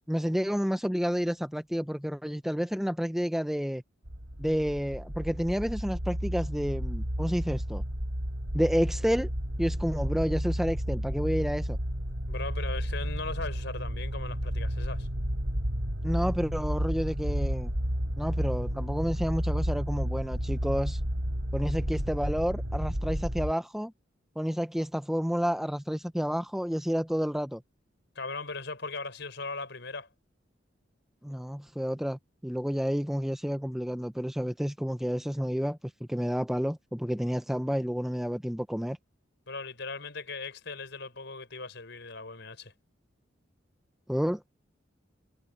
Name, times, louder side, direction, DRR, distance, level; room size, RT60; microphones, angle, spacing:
voice 1, 0.1-3.8 4.4-7.8 8.5-9.3 9.6-11.8 16.0-17.7 18.2-21.0 21.5-23.9 24.4-27.6 31.2-35.8 36.1-39.0 44.1-44.4, equal, ahead, 0.7 m, -30 dB
sound 1, 4.1-23.5, equal, 90° right, 7.3 m, -32 dB
voice 2, 12.3-15.1 28.1-30.1 39.5-42.7, left 3 dB, 60° left, 6.1 m, -38 dB
head